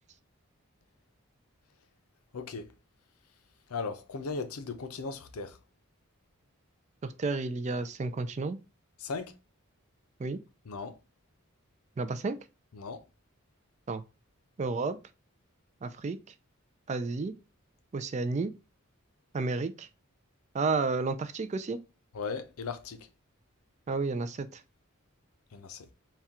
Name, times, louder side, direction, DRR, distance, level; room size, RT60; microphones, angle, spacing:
voice 1, 2.3-2.7 3.7-5.6 9.0-9.3 10.7-11.0 12.7-13.0 22.1-23.1 25.5-25.9, left 4 dB, 90° left, 0.6 m, -37 dB
voice 2, 7.0-8.6 10.2-10.4 12.0-12.4 13.9-14.0 14.6-15.0 15.8-16.2 16.9-17.3 17.9-18.5 19.3-19.9 20.5-21.8 23.9-24.6, right 3 dB, 30° right, 0.3 m, -31 dB
4.2 x 2.3 x 3.6 m
head